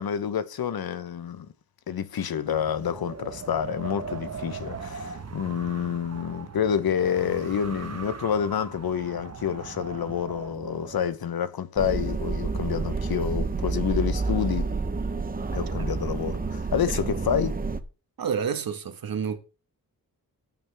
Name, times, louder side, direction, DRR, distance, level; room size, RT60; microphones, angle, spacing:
voice 1, 0.0-1.5 1.9-14.7 15.5-17.6, left 8 dB, 90° left, 1.0 m, -28 dB
Wind, 2.5-11.2, right 5 dB, 45° right, 1.2 m, -39 dB
sound 1, 11.8-17.8, right 4 dB, 25° right, 0.8 m, -29 dB
voice 2, 18.2-19.4, right 7 dB, 75° right, 1.6 m, -29 dB
15.0 x 8.7 x 3.4 m
wide cardioid pair, 170°, 35 cm